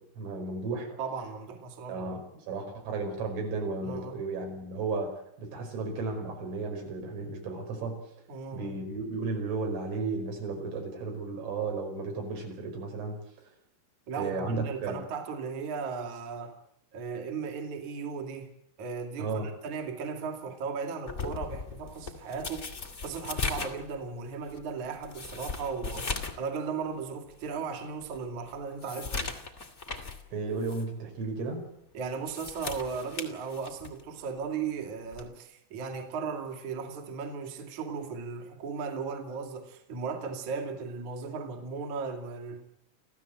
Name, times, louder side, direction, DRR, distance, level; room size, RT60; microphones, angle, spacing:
voice 1, 0.2-0.9 1.9-5.1 5.4-8.0 8.5-13.2 14.1-15.0 19.2-19.5 30.3-31.7, right 3 dB, 80° right, 2 dB, 7.6 m, -34 dB
voice 2, 0.9-2.2 3.8-4.2 8.3-8.8 14.1-16.6 16.9-29.4 31.9-42.6, right 5 dB, 45° right, 3 dB, 3.1 m, -36 dB
sound 1, 21.1-26.5 26.8-26.9 27.5-27.6 28.0-30.2 30.6-30.8 32.1-34.0 35.1-35.3, left 4 dB, 65° left, 0.6 m, -38 dB
28.0 x 15.5 x 7.9 m, 0.73 s
omnidirectional pair, 5.6 m